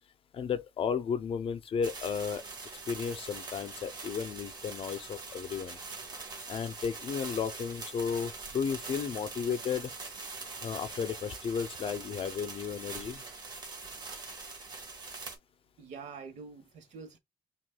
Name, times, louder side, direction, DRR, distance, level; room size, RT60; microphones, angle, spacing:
voice 1, 0.3-2.4 2.9-5.8 6.5-9.9 10.6-13.2, left 6 dB, 45° left, 0.5 m, -34 dB
sound 1, 1.8-15.4, right 3 dB, 35° right, 1.7 m, -43 dB
voice 2, 15.8-17.2, right 5 dB, 70° right, 1.2 m, -46 dB
6.0 x 2.4 x 2.2 m
cardioid pair, 130°, 13 cm